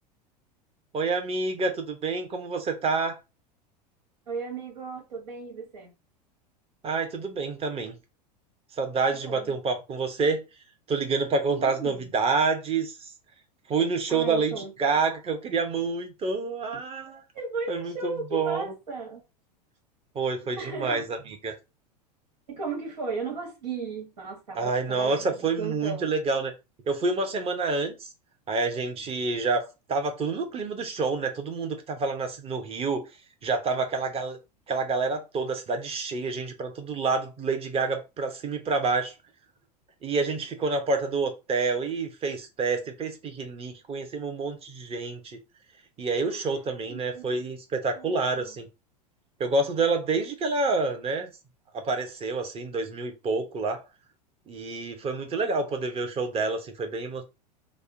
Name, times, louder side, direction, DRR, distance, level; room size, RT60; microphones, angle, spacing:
voice 1, 0.9-3.2 6.8-8.0 8.8-10.4 10.9-13.1 13.7-17.2 17.7-18.6 20.1-21.5 24.5-26.5 26.9-27.9 28.5-33.1 33.4-34.4 34.7-39.1 40.0-45.4 46.0-48.7 49.4-51.3 51.7-53.8 54.5-57.2, right 4 dB, 30° right, 0.9 m, -28 dB
voice 2, 4.3-5.9 9.1-9.5 11.5-12.1 14.1-15.0 17.3-19.2 20.5-21.0 22.5-26.1 46.3-46.4 46.9-47.4 47.9-48.5, right 4 dB, 80° right, 1.6 m, -36 dB
3.4 x 2.2 x 2.6 m
hypercardioid pair, 90°, 21 cm